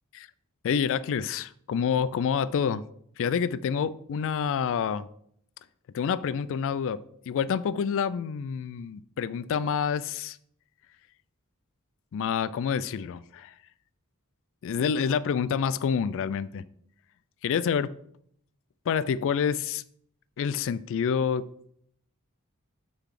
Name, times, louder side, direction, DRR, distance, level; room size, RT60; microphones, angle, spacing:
voice 1, 0.6-2.8 3.2-5.1 5.9-10.4 12.1-13.5 14.6-16.6 17.4-17.9 18.9-19.8 20.4-21.4, left 7 dB, 60° left, 17 dB, 0.3 m, -28 dB
6.5 x 4.0 x 6.3 m, 0.67 s
head